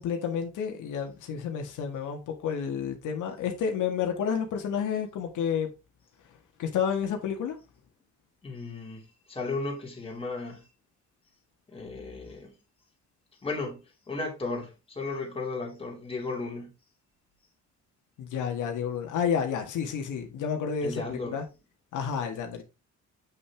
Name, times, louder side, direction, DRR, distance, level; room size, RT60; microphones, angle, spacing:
voice 1, 0.0-5.7 6.3-7.6 18.2-21.5 21.9-22.6, left 7 dB, 75° left, 1.8 m, -30 dB
voice 2, 8.4-10.7 11.7-12.5 13.4-16.7 20.8-21.4, left 3 dB, 20° left, 2.7 m, -35 dB
8.1 x 5.8 x 3.5 m
cardioid pair, 145°, 31 cm